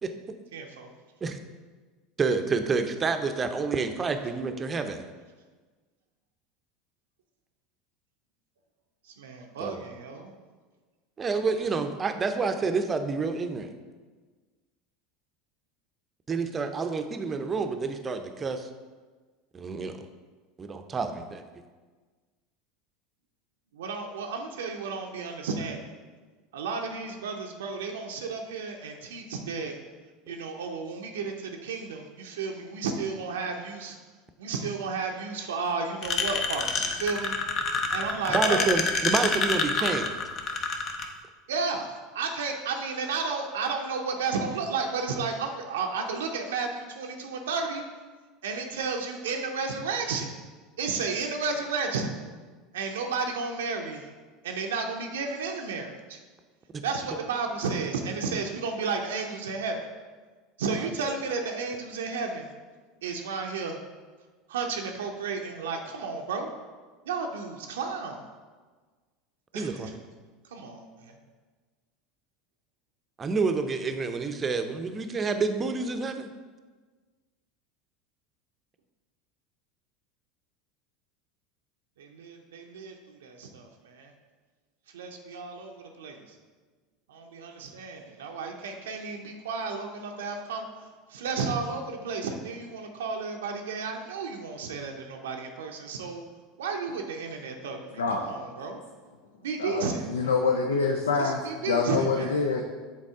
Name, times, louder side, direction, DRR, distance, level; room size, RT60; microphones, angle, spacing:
voice 1, 0.5-0.9 9.2-10.3 23.7-25.9 26.5-29.8 30.3-34.0 34.4-37.3 37.9-38.7 39.8-39.9 41.5-47.8 48.4-50.3 50.8-52.2 52.7-54.1 54.4-56.2 56.8-59.9 60.6-62.5 63.0-63.8 64.5-66.5 67.0-68.3 69.5-69.9 70.5-71.2 82.0-84.1 84.9-86.4 87.1-96.2 96.6-98.8 99.4-100.1 101.2-102.5, right 4 dB, 75° right, 2 dB, 0.5 m, -33 dB
voice 2, 2.2-5.1 9.6-9.8 11.2-13.7 16.3-18.7 19.5-19.9 20.6-21.5 38.3-40.1 60.8-60.9 69.5-69.9 73.2-76.3, right 4 dB, 25° right, 7 dB, 0.6 m, -28 dB
sound 1, 36.0-41.0, left 4 dB, 40° left, 0.7 m, -27 dB
voice 3, 98.0-98.3 99.6-102.6, left 4 dB, 80° left, 3 dB, 0.4 m, -26 dB
7.4 x 4.1 x 3.6 m, 1.4 s
figure-of-eight pair, 75°, 0 cm